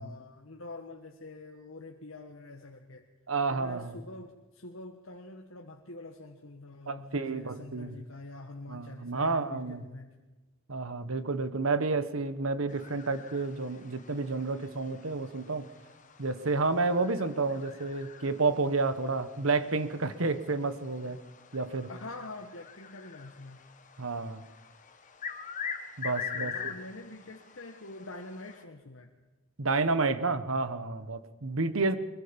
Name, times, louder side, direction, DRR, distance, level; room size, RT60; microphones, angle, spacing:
voice 1, 0.0-3.0 3.5-10.1 21.9-23.6 26.4-29.1, left 2 dB, 80° left, 3 dB, 1.5 m, -45 dB
voice 2, 3.3-4.0 6.9-8.0 8.7-9.9 10.7-15.6 16.2-21.2 21.5-21.9 24.0-24.4 26.0-26.7 29.6-32.0, right 3 dB, 85° right, 12 dB, 1.3 m, -30 dB
sound 1, 12.7-28.6, left 6 dB, 40° left, 1.4 m, -44 dB
24.0 x 22.0 x 5.3 m, 1.2 s
head